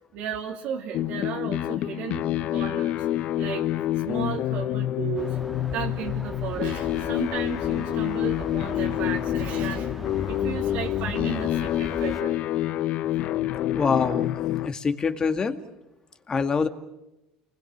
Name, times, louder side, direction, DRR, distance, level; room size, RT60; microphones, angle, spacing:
voice 1, 0.1-2.2 2.5-3.0 3.4-3.7 4.1-5.4 5.7-10.0 10.3-12.4, right 8 dB, 65° right, 0 dB, 2.7 m, -34 dB
sound 1, 0.9-14.7, left 13 dB, 55° left, 0.9 m, -27 dB
sound 2, 5.2-12.2, left 1 dB, ahead, 2.0 m, -38 dB
voice 2, 13.7-14.4 14.6-15.6 16.3-16.7, left 5 dB, 25° left, 8 dB, 2.2 m, -25 dB
29.5 x 20.5 x 7.4 m, 0.93 s
supercardioid pair, 115°, 3 cm